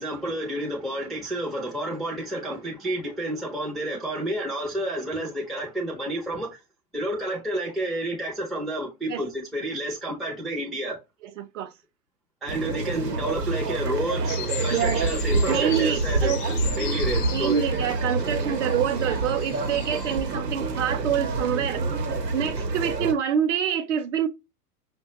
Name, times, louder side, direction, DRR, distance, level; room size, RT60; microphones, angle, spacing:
voice 1, 0.0-6.6 6.9-11.0 12.4-16.3 16.8-17.6 21.0-21.1, right 1 dB, ahead, 0.4 m, -30 dB
voice 2, 11.4-11.7 14.7-15.0 15.5-16.4 17.3-21.8 22.3-24.3, right 9 dB, 50° right, 0.6 m, -26 dB
sound 1, 12.5-23.1, right 3 dB, 85° right, 0.9 m, -27 dB
sound 2, 14.3-20.2, left 10 dB, 70° left, 0.6 m, -38 dB
5.5 x 2.2 x 2.7 m
figure-of-eight pair, 105°, 47 cm